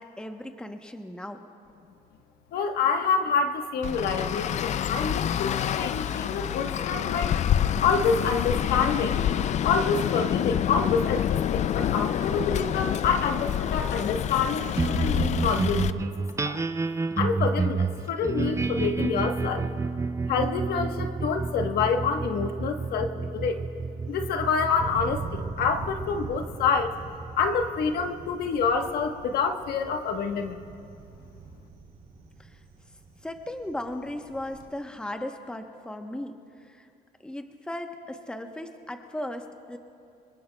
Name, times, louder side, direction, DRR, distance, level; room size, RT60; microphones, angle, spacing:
voice 1, 0.0-1.5 32.4-32.5 33.2-36.9 37.2-39.8, left 1 dB, 5° left, 5 dB, 0.9 m, -37 dB
voice 2, 2.5-7.4 7.8-9.2 9.6-16.6 17.2-19.7 20.3-23.6 24.1-27.0 27.3-30.6, left 5 dB, 70° left, 5 dB, 1.2 m, -27 dB
Traffic noise roadway noise, 3.8-15.9, left 10 dB, 45° left, 0.4 m, -27 dB
sound 1, 14.8-29.4, right 4 dB, 15° right, 0.5 m, -30 dB
Thunder, 24.1-34.7, right 5 dB, 50° right, 2.8 m, -43 dB
26.0 x 21.5 x 2.3 m, 2.5 s
cardioid pair, 110°, 17 cm